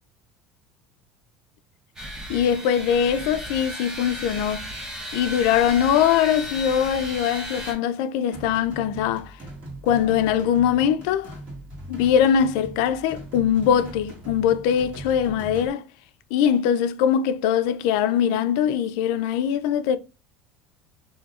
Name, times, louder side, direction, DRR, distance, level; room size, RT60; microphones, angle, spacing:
sound 1, 2.0-7.7, equal, 15° right, 0.9 m, -35 dB
voice 1, 2.3-4.6 5.1-9.3 9.8-11.4 11.9-15.8 16.3-20.0, left 9 dB, 80° left, 0.4 m, -22 dB
sound 2, 8.3-15.7, right 1 dB, 40° right, 1.8 m, -40 dB
4.0 x 2.7 x 2.4 m
cardioid pair, 145°, 4 cm